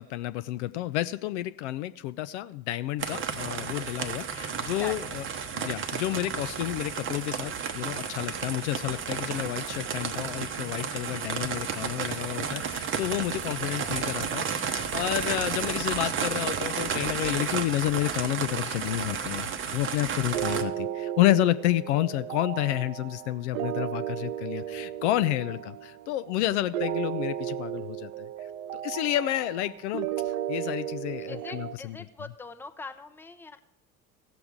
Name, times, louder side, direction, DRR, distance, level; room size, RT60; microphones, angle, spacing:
voice 1, 0.0-5.2 5.5-19.5 19.7-28.3 28.7-32.0, left 15 dB, 55° left, 13 dB, 0.5 m, -30 dB
sound 1, 3.0-20.6, right 7 dB, 30° right, 0.9 m, -32 dB
voice 2, 13.4-14.0 31.3-33.6, left 3 dB, 5° left, 9 dB, 0.6 m, -43 dB
sound 2, 20.3-31.8, right 11 dB, 65° right, 0.6 m, -34 dB
16.5 x 6.8 x 3.6 m, 0.86 s
figure-of-eight pair, 65°, 42 cm